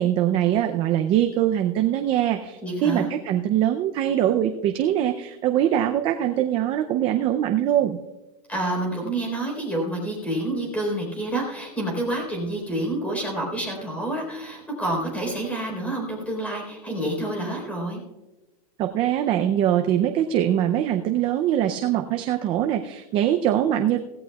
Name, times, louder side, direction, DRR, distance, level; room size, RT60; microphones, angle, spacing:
voice 1, 0.0-8.0 18.8-24.0, right 11 dB, 25° right, 6 dB, 0.5 m, -22 dB
voice 2, 2.6-3.1 8.5-18.0, right 1 dB, 5° left, 0 dB, 3.9 m, -28 dB
16.5 x 16.5 x 2.3 m, 1.1 s
supercardioid pair, 160°, 20 cm